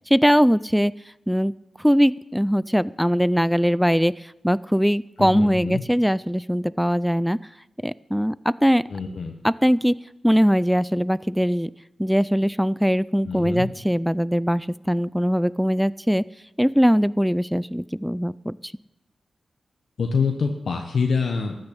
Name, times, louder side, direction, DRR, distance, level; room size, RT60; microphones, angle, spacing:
voice 1, 0.1-0.9 1.3-1.5 1.8-4.1 4.4-7.4 7.8-8.8 9.4-9.9 10.2-11.7 12.0-16.2 16.6-18.6, equal, ahead, 20 dB, 0.3 m, -21 dB
voice 2, 5.2-5.8 8.9-9.3 13.2-13.7 20.0-21.5, left 5 dB, 75° left, 3 dB, 1.1 m, -25 dB
13.0 x 6.5 x 8.3 m, 0.92 s
cardioid pair, 55°, 0 cm